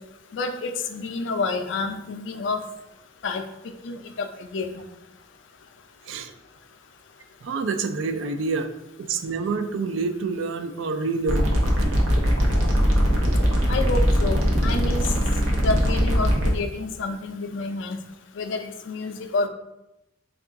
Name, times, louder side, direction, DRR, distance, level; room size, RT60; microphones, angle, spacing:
voice 1, 0.3-2.6 3.2-3.4 3.8-4.8 13.7-15.1 15.6-18.0 18.4-19.5, left 3 dB, 65° left, 7 dB, 0.4 m, -29 dB
voice 2, 7.4-8.7 9.0-11.5, right 4 dB, 70° right, 8 dB, 0.3 m, -27 dB
sound 1, 11.3-16.5, equal, 90° right, 0.8 m, -21 dB
3.7 x 2.3 x 3.6 m, 0.88 s
head